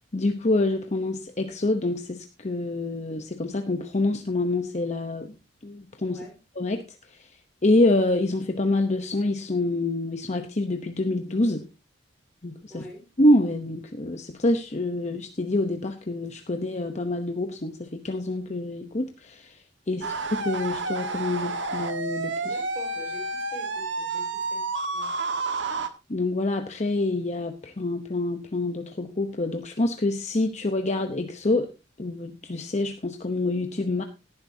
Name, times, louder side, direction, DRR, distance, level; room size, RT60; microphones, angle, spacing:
voice 1, 0.1-5.3 5.6-6.2 6.6-6.8 7.1-7.3 7.6-11.6 12.4-12.8 13.2-19.6 19.9-20.1 20.4-22.6 26.1-31.7 32.0-34.0, left 2 dB, 35° left, 6 dB, 0.9 m, -26 dB
voice 2, 6.0-6.4 12.7-13.0 19.8-20.1 22.4-25.2, left 1 dB, 5° left, 0 dB, 4.8 m, -45 dB
sound 1, 20.0-25.9, right 3 dB, 65° right, 1.5 m, -30 dB
18.0 x 10.5 x 2.8 m, 0.27 s
head